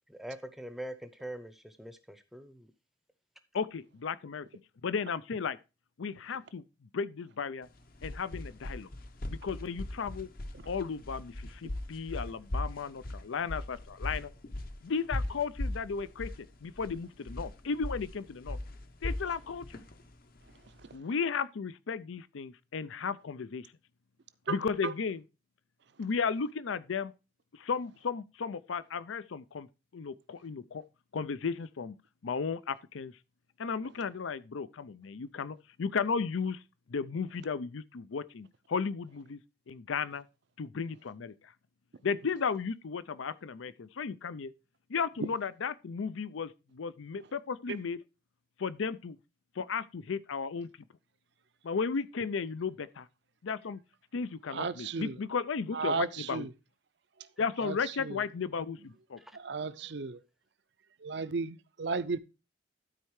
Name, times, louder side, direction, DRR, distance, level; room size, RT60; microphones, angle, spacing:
voice 1, 0.1-2.7 59.2-59.4, right 1 dB, ahead, 0.6 m, -43 dB
voice 2, 3.5-4.5 4.8-5.6 6.0-7.7 8.0-8.9 9.3-10.3 10.7-14.3 14.8-18.6 19.0-19.8 20.9-23.7 24.5-25.2 26.0-27.1 27.5-29.7 29.9-30.8 31.1-32.0 32.2-33.1 33.6-36.6 36.9-39.4 39.7-40.2 40.6-41.3 42.0-44.5 44.9-48.0 48.6-49.2 49.6-50.7 51.6-53.1 53.4-53.8 54.1-56.5 57.4-59.2, left 5 dB, 80° left, 0.5 m, -34 dB
sound 1, 7.7-20.9, left 1 dB, 45° left, 0.8 m, -39 dB
voice 3, 54.5-55.2 55.7-56.5 57.6-58.2 59.3-60.2 61.0-62.2, right 4 dB, 60° right, 0.5 m, -34 dB
12.5 x 4.4 x 4.8 m
head